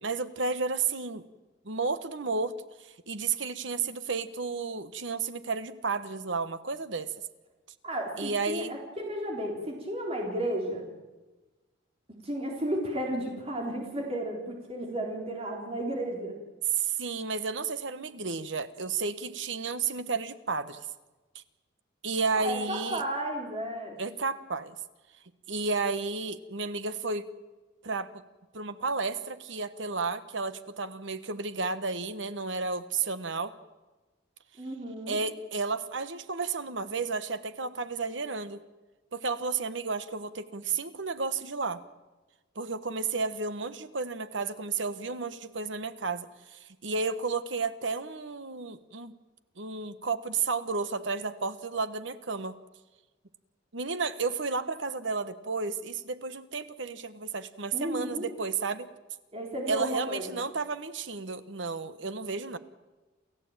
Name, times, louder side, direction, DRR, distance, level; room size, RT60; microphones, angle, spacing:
voice 1, 0.0-1.2 1.6-2.5 3.1-7.1 8.2-8.7 16.7-20.9 21.3-21.4 22.0-23.0 24.0-24.7 25.5-27.3 27.8-28.1 28.5-33.5 35.1-38.6 39.1-41.8 42.5-49.1 49.6-52.5 53.7-58.9 59.7-62.6, right 4 dB, 65° right, 12 dB, 1.3 m, -32 dB
voice 2, 7.8-10.9 12.2-16.3 22.4-24.0 34.6-35.2 57.7-58.3 59.3-60.4, right 1 dB, 30° right, 0 dB, 3.9 m, -33 dB
29.0 x 14.5 x 9.0 m, 1.2 s
head